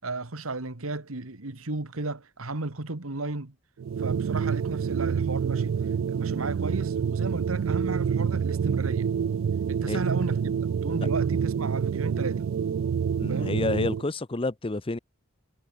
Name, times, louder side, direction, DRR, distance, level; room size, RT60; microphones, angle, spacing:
voice 1, 0.0-3.5 4.0-5.8 6.1-9.1 9.7-10.6 10.8-12.5 13.3-13.5, right 2 dB, 80° right, 1.9 m, -34 dB
sound 1, 3.8-14.0, right 7 dB, 65° right, 0.3 m, -27 dB
voice 2, 13.2-15.0, left 2 dB, 25° left, 0.7 m, -29 dB
head